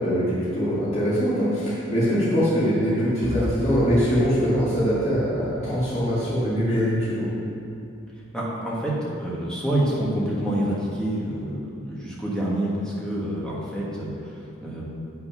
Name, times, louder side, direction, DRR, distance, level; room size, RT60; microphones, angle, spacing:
voice 1, 0.0-7.3, equal, 35° left, -11 dB, 2.1 m, -23 dB
sound 1, 3.2-7.1, equal, 20° right, 0.7 m, -35 dB
voice 2, 8.3-8.9 9.2-14.8, right 1 dB, 5° left, -6 dB, 1.6 m, -27 dB
8.2 x 5.9 x 5.8 m, 2.6 s
head